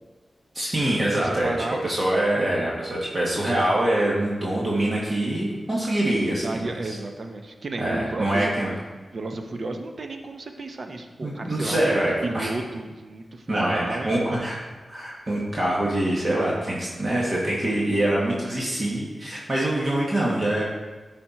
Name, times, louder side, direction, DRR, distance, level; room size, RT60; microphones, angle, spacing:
voice 1, 0.5-1.5 1.8-6.5 6.8-7.0 7.8-8.7 11.2-12.5 13.5-14.6 14.9-20.6, right 1 dB, 40° right, -5 dB, 1.7 m, -24 dB
voice 2, 1.2-1.9 6.4-8.5 9.1-11.8 12.2-14.5, right 2 dB, 55° right, 5 dB, 0.8 m, -33 dB
12.0 x 4.4 x 4.4 m, 1.3 s
wide cardioid pair, 85°, 0 cm